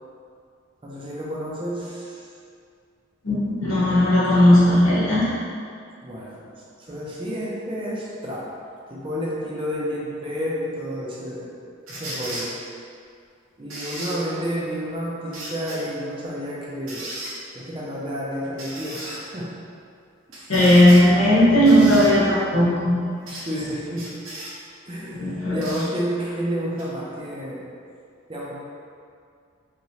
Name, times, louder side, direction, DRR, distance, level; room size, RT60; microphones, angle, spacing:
voice 1, 0.8-2.2 6.0-6.5 6.8-8.5 8.9-11.5 11.9-12.6 13.6-17.2 17.5-19.6 20.3-20.5 23.3-24.2 24.9-27.7 28.3-28.5, equal, 25° right, -5 dB, 0.5 m, -30 dB
voice 2, 3.2-5.3 20.5-22.9 25.2-25.6, left 1 dB, 85° left, -8 dB, 1.1 m, -16 dB
sound 1, 11.9-12.5 13.7-14.2 15.3-15.8 16.9-17.3 18.6-19.2 20.3-21.1 21.7-22.1 23.3-23.5 24.0-24.5 25.6-25.9 26.8-26.9, right 1 dB, 85° right, 0.7 m, -35 dB
3.1 x 2.9 x 2.8 m, 2.3 s
head